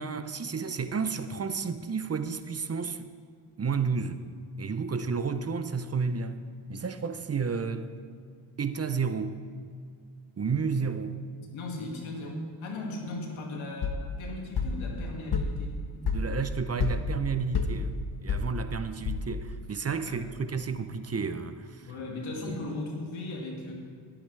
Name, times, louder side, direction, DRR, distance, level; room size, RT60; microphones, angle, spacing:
voice 1, 0.0-3.1 3.6-4.2 4.6-6.4 6.7-7.9 8.6-9.4 10.4-11.2 16.0-21.9 22.4-22.6, right 5 dB, 30° right, 0.7 m, -31 dB
voice 2, 11.5-15.8 20.0-20.3 21.9-23.7, left 2 dB, 90° left, 2.2 m, -37 dB
sound 1, 13.8-19.6, left 4 dB, 55° left, 1.2 m, -31 dB
20.0 x 8.6 x 3.3 m
cardioid pair, 60°, 46 cm